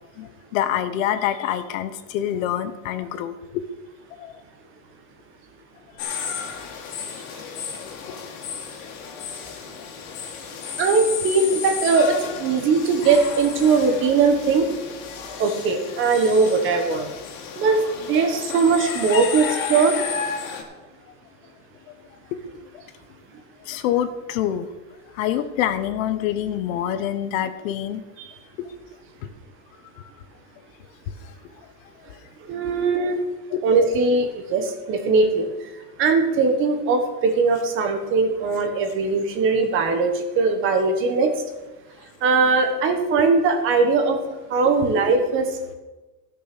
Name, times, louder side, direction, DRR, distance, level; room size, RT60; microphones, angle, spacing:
voice 1, 0.2-3.6 4.2-4.4 8.0-8.3 9.5-9.6 21.9-22.0 23.7-24.7 25.1-28.0 28.6-28.7 30.0-30.1 33.5-33.6 43.1-43.2, left 10 dB, 70° left, 11 dB, 1.1 m, -26 dB
sound 1, 6.0-20.6, left 6 dB, 85° left, 2.6 m, -33 dB
voice 2, 10.8-14.7 15.4-17.1 17.6-20.0 28.2-28.3 32.5-33.2 33.6-35.7 36.0-41.3 42.2-44.2 44.5-45.7, right 4 dB, 30° right, 6 dB, 1.3 m, -20 dB
16.0 x 6.3 x 6.1 m, 1.1 s
cardioid pair, 180°, 41 cm